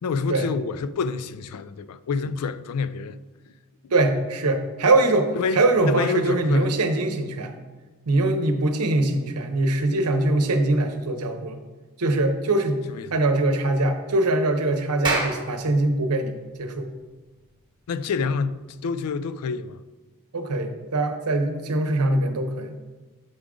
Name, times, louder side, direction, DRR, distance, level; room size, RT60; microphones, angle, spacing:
voice 1, 0.0-3.2 5.4-6.7 12.9-13.2 17.9-19.8, left 4 dB, 80° left, 0.4 m, -28 dB
voice 2, 3.9-7.5 8.1-11.6 12.0-12.8 13.1-16.9 20.3-22.8, right 2 dB, 85° right, 0.8 m, -22 dB
Clapping, 14.8-19.7, right 3 dB, 20° right, 1.2 m, -33 dB
7.8 x 3.7 x 4.8 m
head